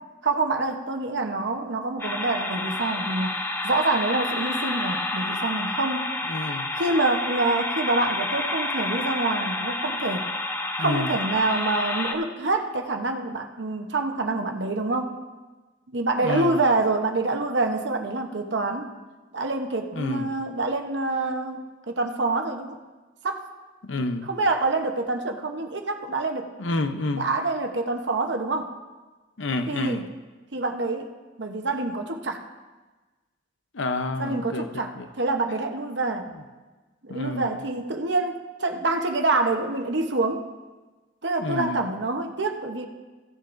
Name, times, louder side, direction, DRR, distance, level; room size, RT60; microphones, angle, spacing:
voice 1, 0.2-3.4 3.6-6.1 6.8-10.2 10.8-15.2 15.9-18.9 19.3-22.8 23.2-23.4 24.3-26.5 27.1-28.7 29.7-30.1 30.5-31.1 31.4-32.4 34.2-34.9 35.2-36.3 37.0-40.4 41.2-42.9, right 2 dB, 65° right, 4 dB, 0.9 m, -26 dB
sound 1, 2.0-12.1, left 2 dB, 15° left, 0.7 m, -29 dB
voice 2, 6.3-6.7 10.8-11.2 16.2-16.6 19.9-20.3 23.8-24.3 26.6-27.3 29.4-30.1 33.7-35.1 37.1-37.6 41.4-41.9, left 2 dB, 90° left, 8 dB, 0.8 m, -29 dB
16.5 x 10.0 x 2.6 m, 1.3 s
head